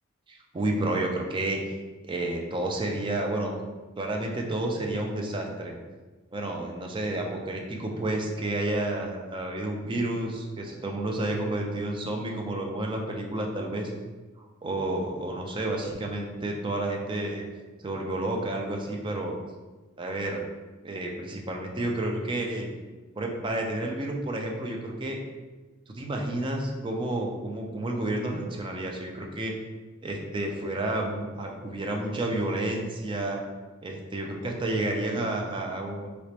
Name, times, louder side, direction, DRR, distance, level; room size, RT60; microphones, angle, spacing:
voice 1, 0.3-1.8 2.0-3.5 4.0-5.7 6.3-13.9 14.4-17.5 17.8-19.3 20.0-20.4 20.8-22.7 23.2-25.2 25.9-29.5 30.0-33.4 33.8-36.1, right 1 dB, 25° right, 1 dB, 0.4 m, -30 dB
3.2 x 2.9 x 2.8 m, 1.3 s
head